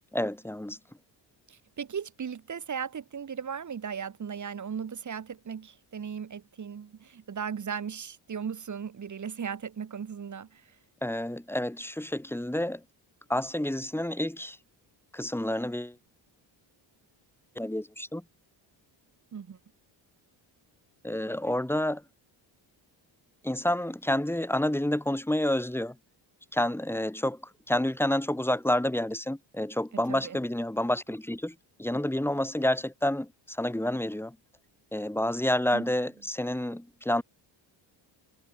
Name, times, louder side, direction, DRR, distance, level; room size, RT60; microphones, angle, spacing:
voice 1, 0.1-0.8 11.0-12.8 13.3-14.6 15.1-16.0 17.5-18.2 21.0-22.0 23.4-25.9 26.5-34.4 34.9-37.2, left 1 dB, 5° left, 3.4 m, -29 dB
voice 2, 1.5-10.8 19.3-19.6 30.1-30.4 35.7-35.9, right 7 dB, 40° right, 2.7 m, -37 dB
cardioid pair, 125°, 47 cm